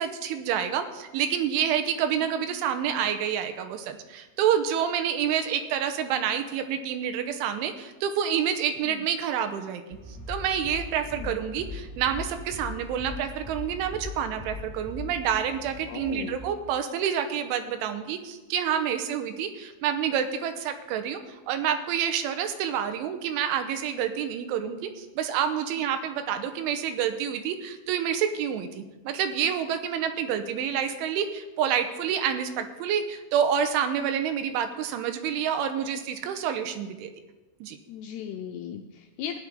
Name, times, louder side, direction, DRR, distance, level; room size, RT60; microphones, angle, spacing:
voice 1, 0.0-9.8 10.3-37.1 37.6-37.8, right 8 dB, 85° right, 8 dB, 3.3 m, -28 dB
sound 1, 9.9-16.5, left 2 dB, 20° left, 1.5 m, -40 dB
voice 2, 15.9-16.4 37.9-39.4, left 8 dB, 85° left, 5 dB, 2.4 m, -37 dB
16.5 x 10.5 x 3.7 m, 1.1 s
omnidirectional pair, 5.4 m